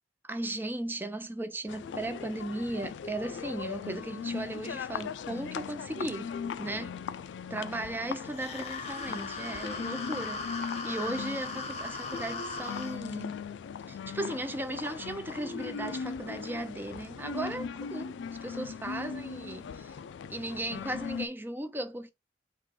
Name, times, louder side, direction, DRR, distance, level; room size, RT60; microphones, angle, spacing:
voice 1, 0.2-6.3 6.6-7.0 7.5-13.4 13.9-18.1 18.4-20.0 20.3-22.1, right 1 dB, 10° right, 0.4 m, -36 dB
sound 1, 1.7-21.3, left 6 dB, 90° left, 0.3 m, -39 dB
sound 2, 8.3-13.0, left 3 dB, 35° left, 0.8 m, -38 dB
3.6 x 2.5 x 4.5 m
head